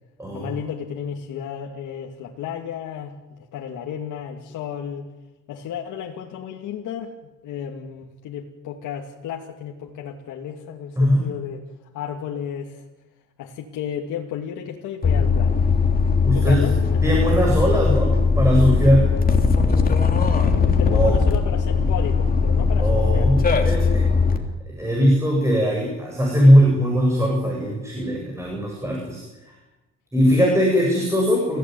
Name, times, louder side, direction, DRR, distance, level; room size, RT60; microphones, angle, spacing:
voice 1, 0.3-5.1 5.5-7.1 7.4-11.7 11.9-12.9 13.4-15.7 16.3-17.2 20.3-23.3, left 8 dB, 80° left, 0 dB, 2.6 m, -33 dB
sound 1, 15.0-24.4, left 4 dB, 30° left, 3.3 m, -19 dB
voice 2, 16.2-16.6 17.0-19.1 20.9-21.2 22.8-24.1 24.7-29.5 30.1-31.6, equal, 10° right, -1 dB, 7.8 m, -20 dB
29.5 x 16.5 x 9.5 m, 1.1 s
cardioid pair, 115°, 30 cm